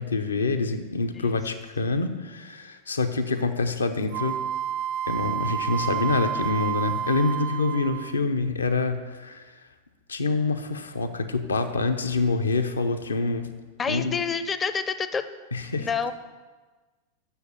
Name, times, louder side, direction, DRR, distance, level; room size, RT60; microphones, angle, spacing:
voice 1, 0.0-4.4 5.1-9.5 10.1-13.5 13.9-14.1 15.5-15.9, left 3 dB, 75° left, 7 dB, 0.6 m, -26 dB
Wind instrument woodwind instrument, 4.1-8.3, right 10 dB, 45° right, 0.3 m, -30 dB
voice 2, 13.8-15.3 15.8-16.1, left 6 dB, 20° left, 12 dB, 0.5 m, -28 dB
6.9 x 6.6 x 6.8 m, 1.3 s
figure-of-eight pair, 90°, 0 cm